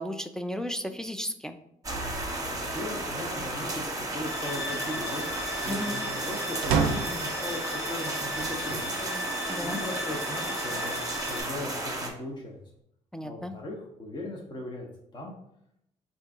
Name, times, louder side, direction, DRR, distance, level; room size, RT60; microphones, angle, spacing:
voice 1, 0.0-1.6 5.7-6.0 9.5-9.8 13.1-13.5, equal, 5° left, 7 dB, 0.4 m, -34 dB
sound 1, 1.8-12.1, right 1 dB, 20° right, 1.0 m, -33 dB
voice 2, 2.4-5.3 5.6-9.2 9.6-12.6 13.2-14.9 15.1-15.3, left 1 dB, 30° left, -1 dB, 0.8 m, -38 dB
sound 2, 4.2-11.4, left 1 dB, 75° left, 0.7 m, -38 dB
sound 3, 6.6-7.3 8.3-8.9 9.5-9.6 10.9-11.6, right 5 dB, 85° right, 0.4 m, -29 dB
3.7 x 2.6 x 3.5 m, 0.76 s
hypercardioid pair, 50°, 16 cm